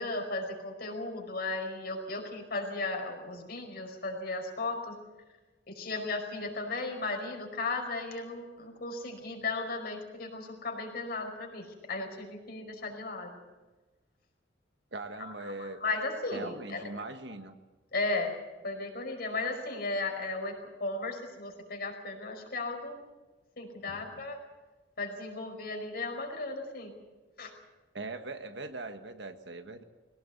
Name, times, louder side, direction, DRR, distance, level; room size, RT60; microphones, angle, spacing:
voice 1, 0.0-4.9 5.7-13.4 15.2-16.8 17.9-18.3 18.6-22.9 23.6-24.4 25.0-26.9 27.4-27.5, left 3 dB, 55° left, 3 dB, 5.1 m, -35 dB
voice 2, 14.9-15.8 16.3-17.5 23.9-24.0 27.9-29.8, right 2 dB, 70° right, 7 dB, 1.6 m, -41 dB
22.0 x 18.5 x 8.0 m, 1.2 s
head